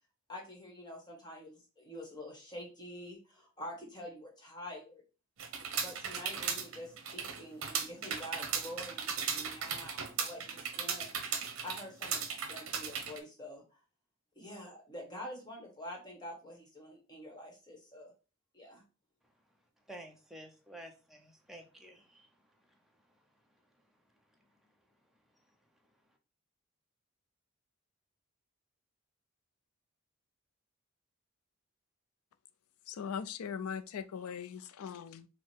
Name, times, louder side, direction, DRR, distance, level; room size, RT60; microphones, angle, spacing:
voice 1, 0.3-5.0 5.7-11.1 11.6-13.8 14.3-18.1 18.5-18.8, left 1 dB, 20° left, 1.1 m, -47 dB
sound 1, 5.4-13.2, right 6 dB, 70° right, 0.7 m, -37 dB
voice 2, 19.9-24.8 25.3-25.6, right 1 dB, ahead, 0.5 m, -54 dB
voice 3, 32.9-35.3, left 7 dB, 85° left, 0.4 m, -40 dB
4.6 x 2.0 x 4.4 m
head